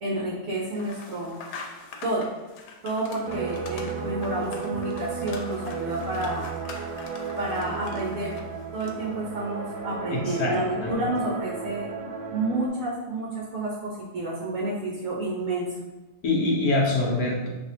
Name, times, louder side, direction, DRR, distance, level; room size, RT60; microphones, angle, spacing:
voice 1, 0.0-1.4 2.0-2.3 2.8-6.5 6.8-6.9 7.4-8.4 8.7-15.7, right 2 dB, 55° right, -5 dB, 1.0 m, -30 dB
sound 1, 0.7-9.2, left 4 dB, 90° left, 1.5 m, -44 dB
sound 2, 3.3-12.7, right 5 dB, 80° right, 1.3 m, -34 dB
voice 2, 10.1-11.1 16.2-17.5, left 2 dB, 55° left, -3 dB, 1.2 m, -25 dB
6.5 x 2.9 x 2.8 m, 1.1 s
omnidirectional pair, 2.1 m